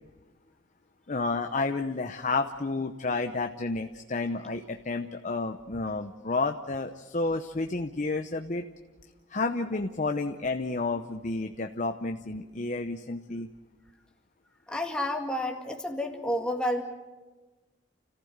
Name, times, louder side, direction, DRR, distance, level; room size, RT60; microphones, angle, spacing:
voice 1, 1.1-8.6 9.3-13.5, left 3 dB, 40° left, 6 dB, 0.8 m, -31 dB
voice 2, 14.7-16.8, left 1 dB, 5° left, 1 dB, 2.1 m, -30 dB
29.5 x 15.0 x 8.0 m, 1.3 s
head